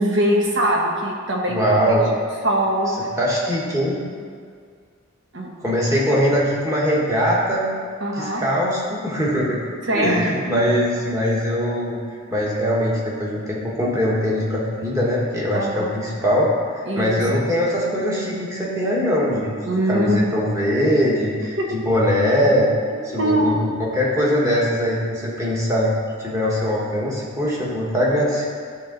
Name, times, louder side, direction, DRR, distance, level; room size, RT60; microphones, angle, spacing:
voice 1, 0.0-2.0 2.4-2.9 5.3-5.5 8.0-8.4 9.9-10.3 15.5-15.9 16.9-17.2 19.6-20.2 21.6-21.7 22.9-23.7, right 1 dB, 60° right, -1 dB, 1.2 m, -22 dB
voice 2, 1.5-2.1 3.2-4.0 5.6-7.7 8.1-9.6 9.9-12.0 12.3-19.5 19.9-22.7 23.0-25.9 26.2-28.5, equal, 15° right, -5 dB, 1.4 m, -21 dB
11.5 x 4.6 x 3.9 m, 2.1 s
head